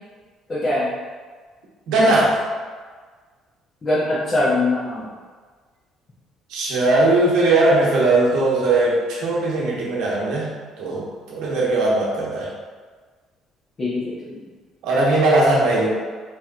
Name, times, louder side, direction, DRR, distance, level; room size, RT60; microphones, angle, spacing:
voice 1, 0.5-0.9 3.8-5.1 13.8-14.4, left 2 dB, 30° left, -10 dB, 1.0 m, -22 dB
voice 2, 1.9-2.4 6.5-12.5 14.8-15.9, right 2 dB, 80° right, -4 dB, 1.0 m, -19 dB
4.3 x 3.0 x 2.5 m, 1.5 s
cardioid pair, 115°, 0 cm